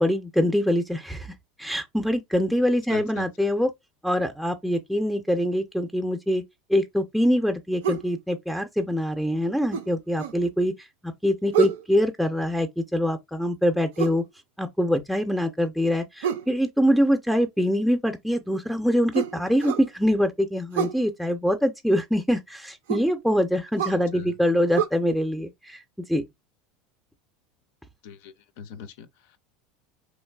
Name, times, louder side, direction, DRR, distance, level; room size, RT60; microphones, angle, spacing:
voice 1, 0.0-1.3 1.6-3.7 4.0-6.4 6.7-10.7 11.0-14.2 14.6-25.8 26.1-26.2, equal, ahead, 0.5 m, -24 dB
voice 2, 2.9-3.3 23.9-24.3 28.0-29.4, left 6 dB, 70° left, 0.4 m, -41 dB
sound 1, 7.8-8.1 9.7-10.4 11.5-11.9 14.0-14.2 16.2-16.5 19.1-19.9 20.7-21.0 22.9-23.1 23.8-24.0 24.7-24.9, right 9 dB, 80° right, 0.4 m, -27 dB
3.1 x 2.5 x 2.3 m
hypercardioid pair, 85°, 0 cm